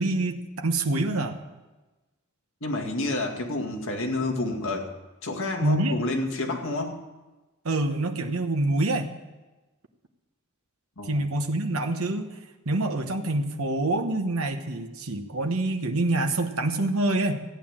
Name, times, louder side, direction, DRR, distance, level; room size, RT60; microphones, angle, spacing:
voice 1, 0.0-1.4 5.6-6.0 7.6-9.1 11.1-12.2 12.7-17.4, right 2 dB, 70° right, 5 dB, 1.2 m, -26 dB
voice 2, 2.6-4.9 5.2-7.0 11.0-11.2, left 2 dB, 65° left, 2 dB, 2.2 m, -29 dB
14.5 x 9.4 x 7.4 m, 1.1 s
head